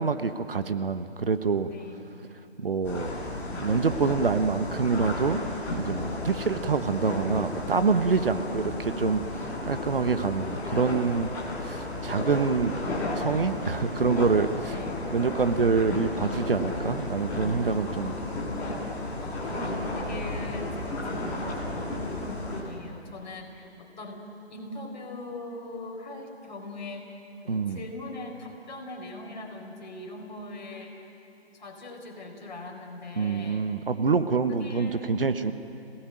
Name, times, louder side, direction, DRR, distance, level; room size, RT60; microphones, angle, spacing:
voice 1, 0.0-1.7 2.6-3.1 3.5-5.4 5.7-8.6 9.0-11.3 11.6-12.7 13.2-14.8 15.1-18.1 27.5-27.8 33.2-35.5, right 4 dB, 60° right, 10 dB, 1.3 m, -26 dB
voice 2, 1.7-2.1 6.2-6.5 8.2-8.7 14.7-15.1 18.0-31.0 31.5-33.9 34.5-35.3, left 2 dB, 45° left, 1 dB, 4.6 m, -41 dB
sound 1, 2.8-22.6, left 2 dB, 5° left, 1.6 m, -33 dB
26.5 x 18.0 x 9.1 m, 2.8 s
figure-of-eight pair, 155°, 32 cm